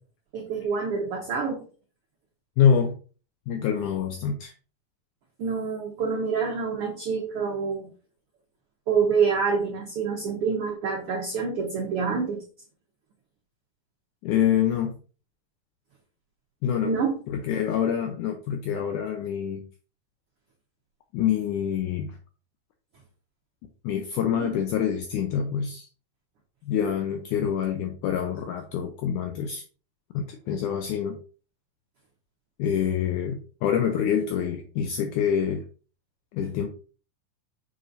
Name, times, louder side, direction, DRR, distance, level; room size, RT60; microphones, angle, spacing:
voice 1, 0.3-1.6 5.4-7.9 8.9-12.4 16.8-17.2 24.4-24.6, right 5 dB, 70° right, 1 dB, 1.4 m, -27 dB
voice 2, 2.6-2.9 3.5-4.5 14.2-15.0 16.6-17.0 17.3-19.7 21.1-22.2 23.8-25.9 26.7-29.6 30.1-31.2 32.6-35.6 36.3-36.7, left 8 dB, 75° left, 4 dB, 2.1 m, -26 dB
6.8 x 6.6 x 2.6 m, 0.37 s
omnidirectional pair, 3.9 m